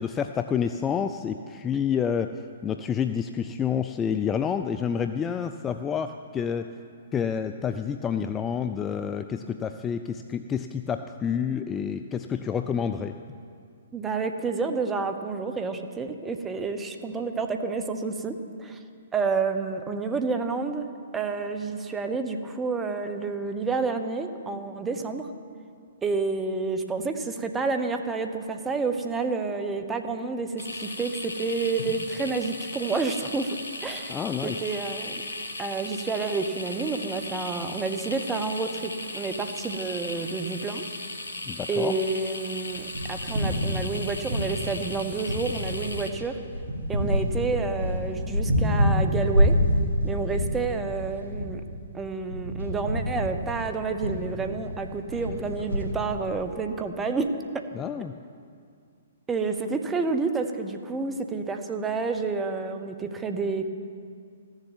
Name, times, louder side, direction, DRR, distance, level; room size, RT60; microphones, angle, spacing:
voice 1, 0.0-2.3 2.6-6.7 7.1-13.2 34.1-34.5 41.5-41.9 57.7-58.1, left 7 dB, 15° left, 8 dB, 0.4 m, -28 dB
voice 2, 13.9-18.8 19.1-20.9 21.1-25.3 26.0-35.2 35.6-40.8 41.7-46.4 46.9-49.6 50.0-51.6 51.9-57.6 59.3-63.7, right 4 dB, 10° right, 6 dB, 0.9 m, -29 dB
sound 1, 30.6-46.1, left 2 dB, 75° left, 1.4 m, -37 dB
sound 2, 42.7-44.9 45.3-55.9, equal, 65° right, 3.5 m, -27 dB
14.5 x 7.3 x 9.3 m, 2.2 s
figure-of-eight pair, 120°, 0 cm